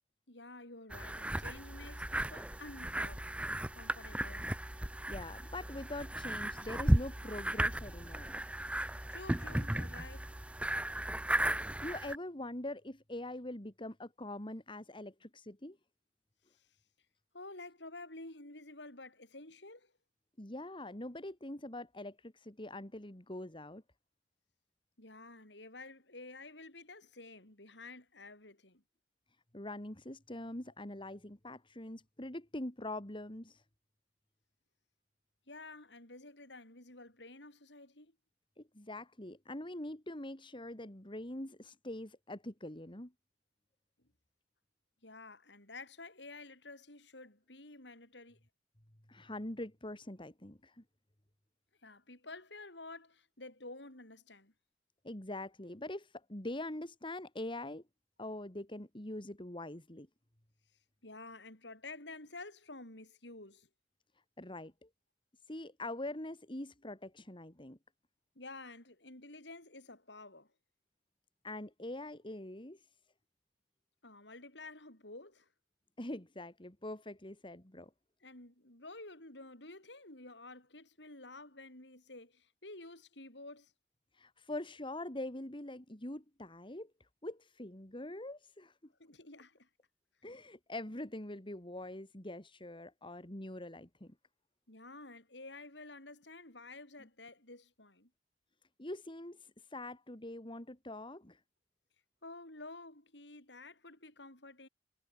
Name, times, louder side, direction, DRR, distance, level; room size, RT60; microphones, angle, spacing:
voice 1, 0.3-3.3 3.5-4.5 8.8-10.3 16.5-16.7 17.3-19.9 25.0-28.8 35.5-38.1 44.0-44.1 45.0-48.4 51.8-54.5 61.0-63.7 68.4-70.5 74.0-75.5 78.2-83.7 89.0-89.7 94.7-98.1 102.2-104.7, left 2 dB, 70° left, 7.8 m, -51 dB
sound 1, 0.9-12.2, right 1 dB, 5° right, 0.7 m, -35 dB
voice 2, 5.1-8.4 11.8-15.8 20.4-23.8 29.5-33.6 38.6-43.1 49.1-50.8 55.0-57.8 58.2-60.1 64.4-64.9 65.5-67.8 71.4-72.8 76.0-77.9 84.2-86.9 87.2-88.9 90.2-94.1 98.8-101.4, left 1 dB, 30° left, 3.0 m, -44 dB
head